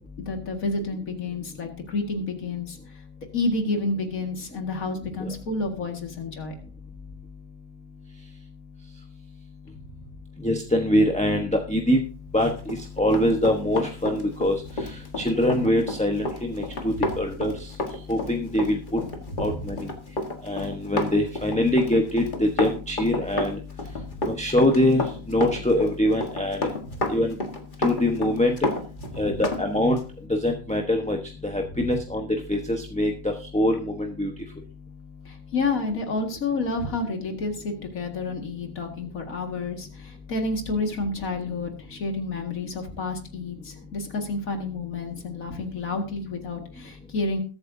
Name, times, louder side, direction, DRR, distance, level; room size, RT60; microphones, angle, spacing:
voice 1, 0.2-2.8 3.3-6.5 19.4-19.6 24.0-24.1 29.1-29.2 35.3-47.4, left 3 dB, 85° left, 3 dB, 2.4 m, -30 dB
voice 2, 10.4-12.0 12.3-14.6 15.2-17.5 18.1-19.0 19.4-19.9 20.4-23.6 24.2-25.0 25.3-26.6 27.1-27.3 27.8-28.6 29.2-30.0 30.3-31.2 31.4-34.3, left 1 dB, 5° left, 2 dB, 0.9 m, -23 dB
Run, 12.6-29.6 30.0-30.1, left 2 dB, 35° left, 1.8 m, -31 dB
21.0 x 8.9 x 2.7 m, 0.37 s
omnidirectional pair, 1.4 m